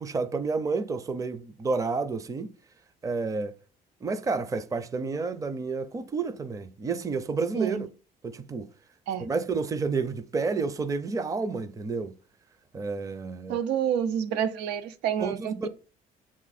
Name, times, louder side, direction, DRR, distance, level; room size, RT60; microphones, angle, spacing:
voice 1, 0.0-2.5 3.0-3.5 4.0-7.9 8.2-8.7 9.2-12.1 12.7-13.6 15.2-15.7, right 4 dB, 20° right, 0.5 m, -30 dB
voice 2, 13.5-15.7, right 9 dB, 90° right, 0.7 m, -28 dB
6.9 x 3.7 x 4.1 m
cardioid pair, 110°, 17 cm